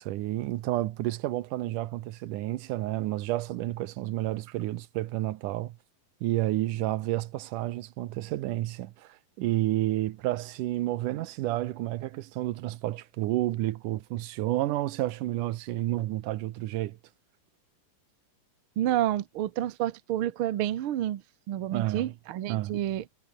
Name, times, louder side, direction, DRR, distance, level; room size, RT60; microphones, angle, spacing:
voice 1, 0.0-5.8 6.2-17.0 21.7-22.1 22.5-22.8, right 16 dB, 75° right, 2.3 m, -30 dB
voice 2, 18.8-21.2 21.5-23.0, right 12 dB, 90° right, 1.2 m, -29 dB
omnidirectional pair, 4.0 m